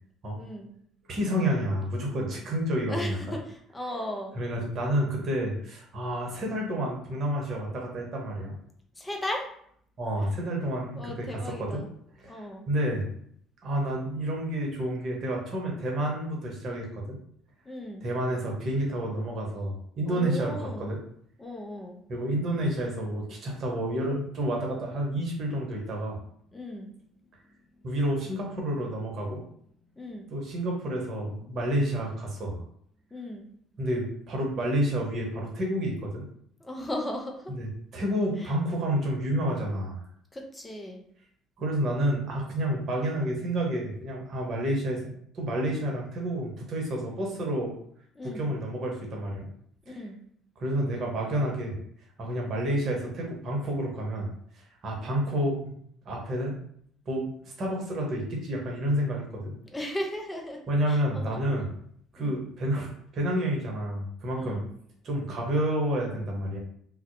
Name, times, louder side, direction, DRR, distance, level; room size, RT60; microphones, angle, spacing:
voice 1, 0.4-0.7 2.9-4.4 9.0-9.5 10.9-11.9 12.3-12.7 17.7-18.1 20.1-20.9 21.4-22.0 26.5-26.9 30.0-30.3 33.1-33.5 36.6-37.5 38.4-38.5 40.3-41.0 48.2-48.5 49.9-50.2 59.7-60.6 60.9-61.4 62.2-62.4 64.3-64.7, left 1 dB, 20° left, 2 dB, 0.5 m, -36 dB
voice 2, 1.1-3.4 4.4-8.5 10.0-11.8 12.2-13.1 13.6-17.2 18.0-21.0 22.1-26.2 27.8-29.4 30.3-32.6 33.8-36.3 37.5-40.0 41.6-45.0 45.3-47.7 48.2-49.5 49.9-50.0 50.6-51.8 52.2-54.3 54.8-55.7 56.1-56.6 57.1-57.3 57.6-59.5 60.7-61.7 62.1-64.6 65.0-66.6, right 1 dB, 50° right, -1 dB, 0.8 m, -29 dB
2.5 x 2.0 x 2.5 m, 0.66 s
hypercardioid pair, 55°, 0 cm